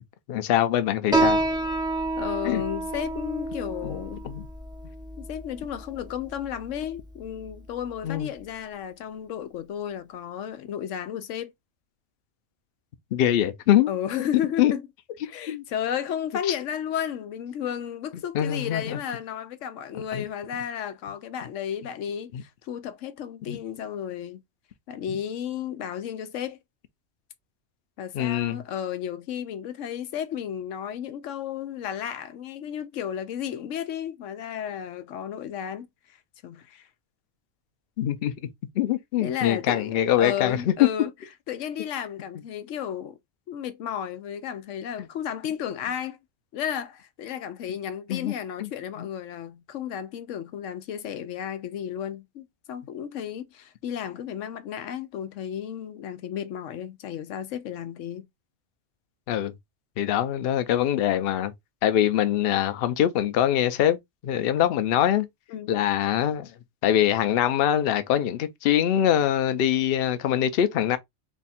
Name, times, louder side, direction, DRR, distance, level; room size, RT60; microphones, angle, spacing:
voice 1, 0.3-1.4 2.4-2.6 4.2-4.5 8.0-8.3 13.1-13.9 14.6-14.7 15.5-15.6 16.5-16.6 18.3-19.0 20.1-20.3 23.5-23.6 28.1-28.6 38.0-38.3 38.8-40.7 48.1-48.3 48.6-48.7 59.3-59.5 60.0-61.5 61.8-64.0 64.2-65.3 65.7-66.5 66.8-71.0, left 11 dB, 60° left, 0.7 m, -23 dB
Piano, 1.1-8.2, right 2 dB, 5° right, 0.6 m, -29 dB
voice 2, 2.2-4.3 5.2-11.5 13.9-14.8 15.2-24.4 24.9-26.6 28.0-36.2 36.4-36.9 39.2-41.1 41.5-43.2 43.5-46.2 46.5-58.3 65.5-65.8, left 9 dB, 90° left, 1.0 m, -33 dB
3.5 x 2.3 x 4.1 m
omnidirectional pair, 1.3 m